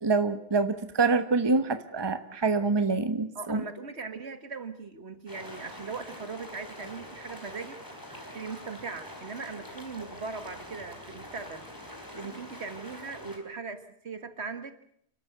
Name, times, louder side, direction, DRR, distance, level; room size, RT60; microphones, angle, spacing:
voice 1, 0.0-3.6, right 4 dB, 20° right, 10 dB, 1.2 m, -26 dB
voice 2, 3.4-7.8 8.3-11.7 12.1-14.7, right 4 dB, 65° right, 10 dB, 2.0 m, -39 dB
sound 1, 5.3-13.4, left 1 dB, 15° left, 4.1 m, -45 dB
29.5 x 13.0 x 8.0 m, 0.70 s
omnidirectional pair, 1.2 m